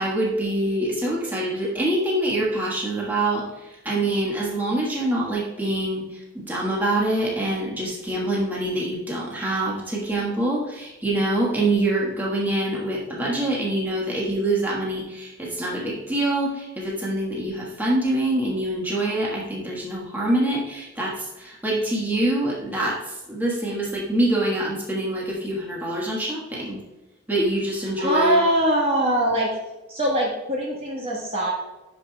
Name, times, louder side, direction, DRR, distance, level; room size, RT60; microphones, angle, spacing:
voice 1, 0.0-26.8 27.3-28.4, right 1 dB, 10° right, -5 dB, 1.4 m, -25 dB
voice 2, 28.0-29.5 29.9-31.5, right 1 dB, 25° right, -3 dB, 1.3 m, -22 dB
11.5 x 5.1 x 2.3 m, 1.1 s
head